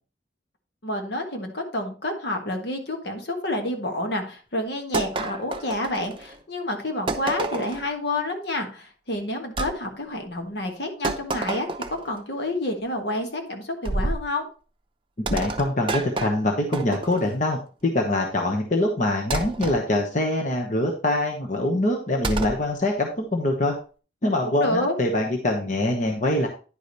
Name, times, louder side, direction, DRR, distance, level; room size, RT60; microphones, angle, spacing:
voice 1, 0.8-11.7 12.0-14.5 24.4-25.0, left 1 dB, 65° left, 4 dB, 1.6 m, -29 dB
sound 1, 4.9-6.4 7.1-7.9 9.6-9.8 11.0-12.2 13.9-14.3 15.3-17.4 19.3-19.8 22.2-22.6, right 2 dB, 30° right, 0.7 m, -29 dB
voice 2, 15.2-23.8 24.2-26.5, left 1 dB, 45° left, 1 dB, 1.1 m, -24 dB
10.0 x 5.1 x 4.0 m, 0.36 s
head